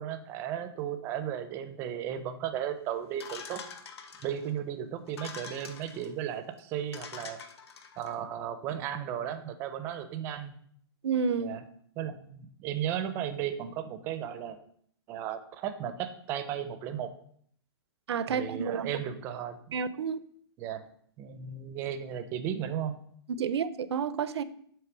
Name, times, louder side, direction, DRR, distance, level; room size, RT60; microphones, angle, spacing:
voice 1, 0.0-3.6 4.2-7.4 8.0-10.5 11.4-11.6 12.0-14.6 15.1-17.1 18.3-19.6 20.6-20.8 21.2-23.0, right 9 dB, 15° right, 0.4 m, -35 dB
sound 1, 3.2-4.5 5.1-6.1 6.6-6.7 6.9-8.1, left 6 dB, 75° left, 1.0 m, -45 dB
voice 2, 11.0-11.6 18.1-18.9 19.7-20.2 23.3-24.4, right 6 dB, 85° right, 0.5 m, -30 dB
7.7 x 3.2 x 6.0 m
hypercardioid pair, 165°, 14 cm